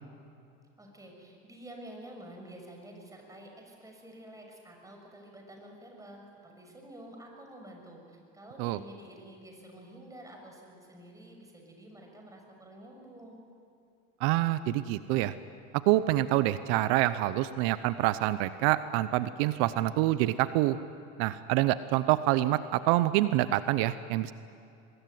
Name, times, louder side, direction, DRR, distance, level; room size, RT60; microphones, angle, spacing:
voice 1, 0.8-13.4, right 1 dB, 10° right, 1 dB, 6.4 m, -49 dB
voice 2, 14.2-15.3 15.9-20.8 21.2-24.3, right 15 dB, 80° right, 14 dB, 0.8 m, -26 dB
24.0 x 21.0 x 9.4 m, 2.6 s
supercardioid pair, 120°, 31 cm